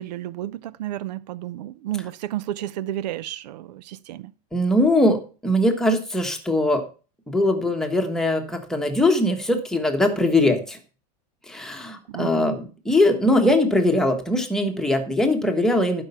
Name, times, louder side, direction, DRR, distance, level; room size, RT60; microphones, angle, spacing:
voice 1, 0.0-4.3 12.1-12.5, right 13 dB, 80° right, 0.7 m, -32 dB
voice 2, 4.5-5.2 5.4-6.8 7.3-10.8 11.5-16.0, left 1 dB, ahead, 1.3 m, -21 dB
11.0 x 5.5 x 5.6 m
supercardioid pair, 145°, 21 cm